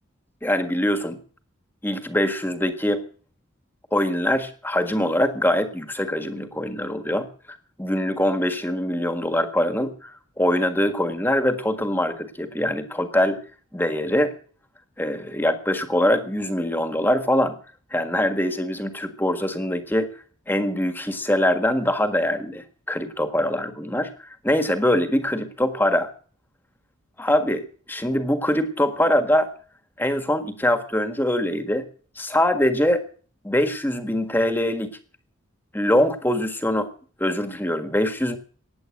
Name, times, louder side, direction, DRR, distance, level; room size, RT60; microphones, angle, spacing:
voice 1, 0.4-1.2 1.8-3.0 3.9-13.4 13.7-14.3 15.0-17.6 17.9-20.1 20.5-26.1 27.2-29.5 30.0-31.8 32.2-33.0 33.4-34.9 35.7-36.9 37.2-38.4, left 1 dB, 10° left, 8 dB, 1.6 m, -23 dB
16.0 x 10.0 x 7.7 m, 0.43 s
head